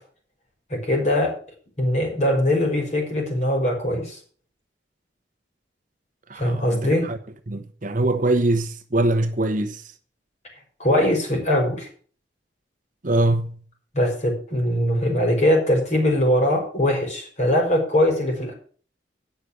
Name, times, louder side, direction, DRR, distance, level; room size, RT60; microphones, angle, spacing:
voice 1, 0.7-1.3 1.8-4.2 6.4-7.0 10.8-11.9 13.9-18.5, left 1 dB, 40° left, 5.8 m, -21 dB
voice 2, 6.3-7.2 7.5-9.8 13.0-13.6, right 2 dB, 45° right, 1.0 m, -23 dB
9.2 x 6.7 x 8.3 m
head